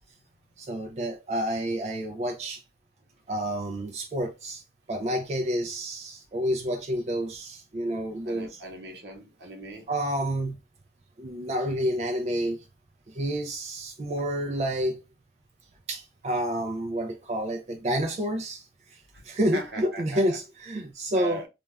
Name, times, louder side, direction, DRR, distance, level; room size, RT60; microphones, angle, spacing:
voice 1, 0.6-2.6 3.3-4.6 4.9-8.6 9.9-10.6 11.2-12.6 13.1-15.0 15.9-21.4, equal, 35° right, 0.3 m, -29 dB
voice 2, 8.2-9.9 19.1-19.2 19.5-20.3 21.1-21.5, left 1 dB, 75° right, 0.8 m, -39 dB
2.3 x 2.2 x 3.2 m
head